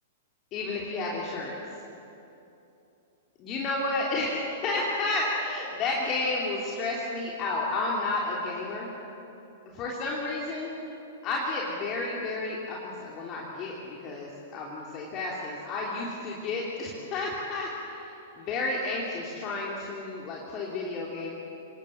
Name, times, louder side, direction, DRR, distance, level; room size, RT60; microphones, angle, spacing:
voice 1, 0.5-1.5 3.4-8.9 9.7-10.7 11.2-21.3, left 2 dB, 30° left, -3 dB, 3.1 m, -31 dB
26.0 x 19.0 x 7.3 m, 2.8 s
figure-of-eight pair, 105°, 0 cm